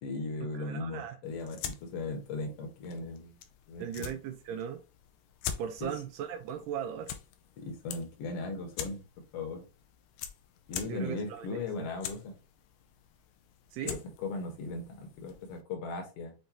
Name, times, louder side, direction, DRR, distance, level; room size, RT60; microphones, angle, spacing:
voice 1, 0.0-3.4 3.7-4.1 5.8-5.9 7.6-9.1 9.3-9.6 10.7-12.4 13.8-16.3, left 3 dB, 55° left, 1.9 m, -38 dB
voice 2, 0.5-1.2 3.8-4.8 5.6-7.1 10.9-11.9 13.7-14.0, right 9 dB, 85° right, 2.1 m, -38 dB
sound 1, 1.2-15.6, left 9 dB, 85° left, 2.4 m, -45 dB
6.9 x 2.6 x 2.9 m
omnidirectional pair, 3.8 m